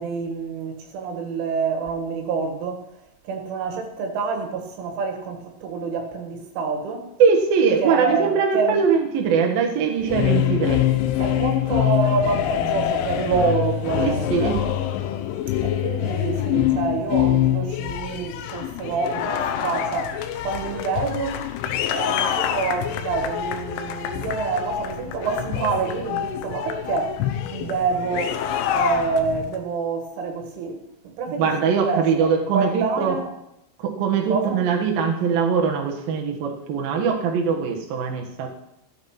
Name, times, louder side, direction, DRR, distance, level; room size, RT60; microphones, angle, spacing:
voice 1, 0.0-2.9 3.3-7.1 7.8-8.9 11.2-14.6 15.6-21.5 21.8-33.3 34.3-34.6, right 4 dB, 75° right, 4.1 m, -27 dB
voice 2, 7.2-10.8 14.0-14.6 31.4-33.2 33.8-38.5, right 6 dB, 60° right, 2.8 m, -21 dB
sound 1, 10.0-29.6, left 11 dB, 80° left, 3.3 m, -25 dB
13.5 x 9.5 x 5.9 m
omnidirectional pair, 5.7 m